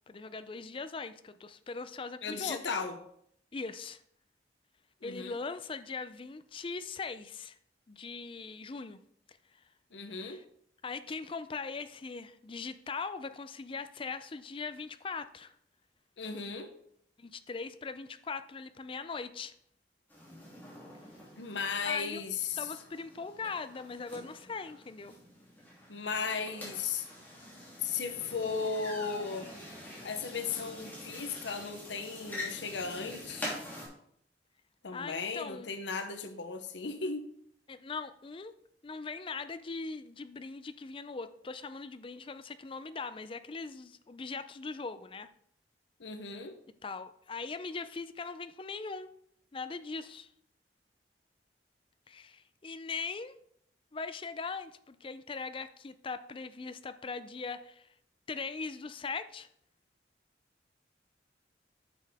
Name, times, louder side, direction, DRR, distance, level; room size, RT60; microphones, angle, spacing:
voice 1, 0.1-2.7 3.5-4.0 5.0-7.6 7.9-9.0 10.1-10.4 10.8-15.5 17.2-19.5 21.8-22.2 22.6-25.2 34.9-35.7 37.7-38.5 38.8-45.3 46.8-49.1 49.5-50.3 52.1-53.4 53.9-57.9 58.3-59.5, left 4 dB, 30° left, 11 dB, 0.4 m, -40 dB
voice 2, 2.2-3.0 5.0-5.4 9.9-10.4 16.2-16.7 21.4-22.7 25.9-27.1 27.8-29.5 30.0-33.6 34.8-37.3 46.0-46.6, left 5 dB, 85° left, 8 dB, 0.8 m, -36 dB
sound 1, 20.1-33.9, left 1 dB, 10° left, 2.9 m, -46 dB
9.7 x 6.6 x 3.5 m, 0.70 s
head